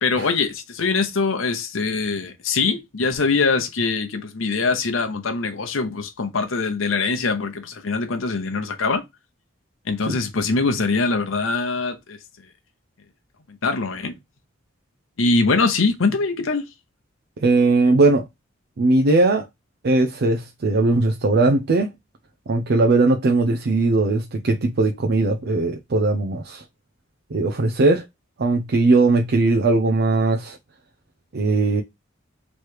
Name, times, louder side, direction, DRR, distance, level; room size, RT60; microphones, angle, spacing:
voice 1, 0.0-9.1 9.9-12.2 13.5-14.2 15.2-16.6, left 4 dB, 80° left, 0.8 m, -23 dB
voice 2, 17.4-18.3 18.8-19.5 19.8-21.9 22.5-26.6 27.3-28.0 28.4-30.6 31.3-31.8, right 3 dB, 55° right, 0.5 m, -19 dB
3.2 x 3.1 x 4.6 m
head